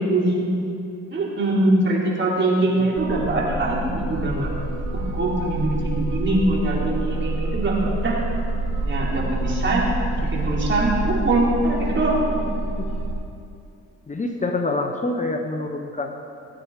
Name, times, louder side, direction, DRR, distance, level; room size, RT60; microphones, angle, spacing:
voice 1, 0.1-0.5 1.1-4.5 4.9-8.2 8.8-12.4, right 2 dB, 40° right, -4 dB, 3.6 m, -23 dB
sound 1, 2.9-13.1, right 2 dB, 80° right, 1.8 m, -27 dB
voice 2, 14.1-16.2, left 2 dB, 25° left, 4 dB, 1.0 m, -26 dB
17.5 x 8.9 x 4.8 m, 2.6 s
cardioid pair, 90°, 30 cm